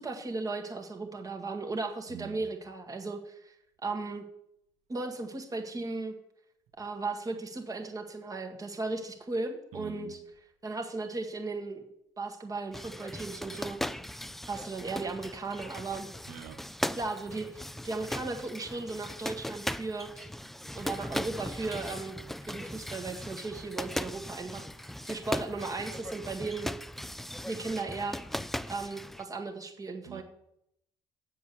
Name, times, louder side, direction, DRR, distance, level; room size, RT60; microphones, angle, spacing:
voice 1, 0.0-3.5 3.8-4.2 4.9-6.1 6.8-10.2 10.6-11.8 12.2-13.8 14.5-16.1 16.9-20.3 20.8-22.2 22.5-26.7 27.5-30.2, right 3 dB, 30° right, 1.8 m, -36 dB
voice 2, 2.1-2.4 9.7-10.2 16.3-16.7 30.1-30.2, right 11 dB, 80° right, 0.7 m, -45 dB
sound 1, 12.7-29.2, equal, ahead, 0.3 m, -38 dB
7.7 x 7.0 x 6.8 m
supercardioid pair, 75°, 11 cm